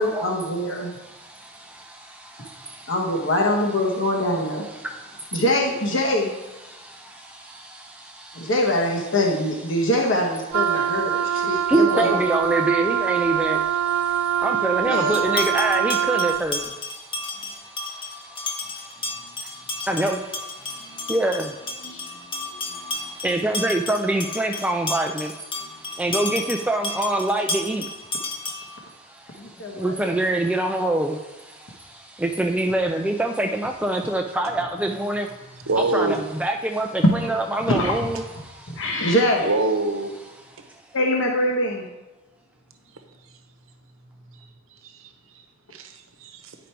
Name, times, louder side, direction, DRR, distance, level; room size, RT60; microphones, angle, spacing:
voice 1, 0.0-0.9 2.9-4.7 5.3-6.3 8.3-12.2 14.8-15.4 21.0-21.1 21.8-22.9 25.6-25.7 29.4-29.9 37.2-37.4 37.7-37.9 38.7-39.5 40.9-41.9, left 1 dB, 60° left, -1 dB, 1.2 m, -24 dB
voice 2, 0.8-2.9 4.7-5.4 6.7-8.5 9.7-9.8 10.7-39.0 40.6-40.8, right 2 dB, 5° right, 3 dB, 0.3 m, -27 dB
Wind instrument woodwind instrument, 10.5-16.5, right 9 dB, 85° right, 0.4 m, -24 dB
sound 1, 15.1-28.8, left 2 dB, 25° left, 0.8 m, -32 dB
voice 3, 35.7-36.2 39.4-40.1 40.6-40.7 42.8-42.9 43.2-43.3 44.3-45.4 45.7-46.6, right 3 dB, 70° right, 6 dB, 0.9 m, -27 dB
9.9 x 5.1 x 4.5 m, 1.1 s
head